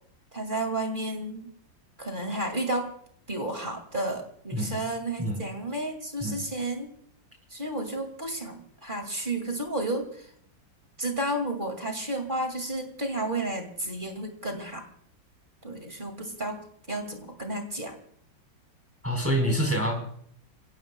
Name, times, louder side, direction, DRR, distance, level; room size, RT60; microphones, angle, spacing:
voice 1, 0.3-1.5 2.0-2.9 3.3-6.9 7.5-10.3 11.0-14.8 15.6-18.0, right 1 dB, 25° right, 4 dB, 2.2 m, -32 dB
voice 2, 19.0-19.9, equal, 5° right, 1 dB, 4.0 m, -26 dB
29.5 x 16.5 x 2.2 m, 0.65 s
omnidirectional pair, 2.1 m